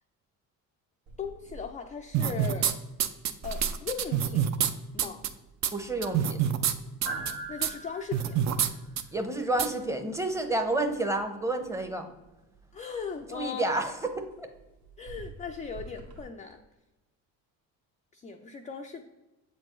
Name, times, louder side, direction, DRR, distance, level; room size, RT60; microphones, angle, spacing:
sound 1, 1.1-16.2, right 3 dB, 70° right, 1.3 m, -47 dB
voice 1, 1.2-2.8 3.4-4.5 4.9-5.2 7.5-8.4 12.7-13.8 15.0-16.6 18.1-19.0, left 6 dB, 20° left, 4 dB, 0.3 m, -38 dB
sound 2, 2.1-2.7 3.0-4.7 5.0-5.3 5.6-5.7 6.0-6.7 7.0-7.3 7.6-7.7 8.1-8.7 9.0-9.1 9.6-9.7, right 9 dB, 45° right, 0.5 m, -26 dB
voice 2, 5.7-6.4 9.1-12.1 13.3-14.5, right 2 dB, 10° right, 6 dB, 0.7 m, -30 dB
7.3 x 4.4 x 3.1 m, 1.0 s
supercardioid pair, 85°, 39 cm